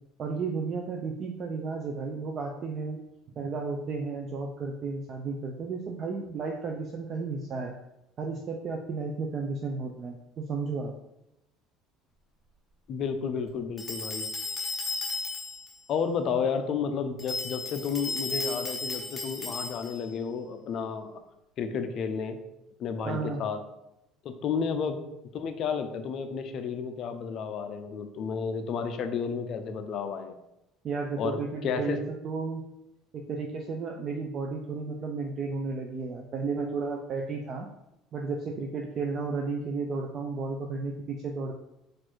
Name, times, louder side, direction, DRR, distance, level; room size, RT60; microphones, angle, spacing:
voice 1, 0.2-3.0 3.4-7.7 8.2-10.9 23.1-23.4 30.8-32.6 33.1-37.7 38.1-41.5, right 4 dB, 35° right, 2 dB, 0.4 m, -33 dB
voice 2, 12.9-14.3 15.9-21.2 21.6-22.4 22.8-23.6 24.2-25.0 25.3-30.4 31.2-32.0, left 6 dB, 45° left, 7 dB, 0.5 m, -31 dB
sound 1, 13.8-15.7 17.2-20.1, left 3 dB, 20° left, 0.8 m, -34 dB
4.2 x 2.5 x 4.4 m, 0.87 s
cardioid pair, 140°, 0 cm